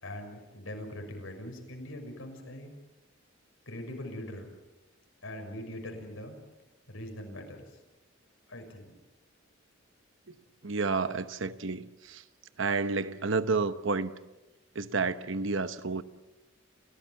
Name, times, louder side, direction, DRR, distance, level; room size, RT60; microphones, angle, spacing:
voice 1, 0.0-2.7 3.7-4.6 5.2-6.4 6.9-7.8 8.5-9.0, left 1 dB, 75° left, 4 dB, 6.1 m, -42 dB
voice 2, 10.6-12.2 12.6-14.1 14.7-16.0, right 4 dB, 65° right, 11 dB, 1.0 m, -30 dB
30.0 x 16.5 x 7.3 m, 1.1 s
head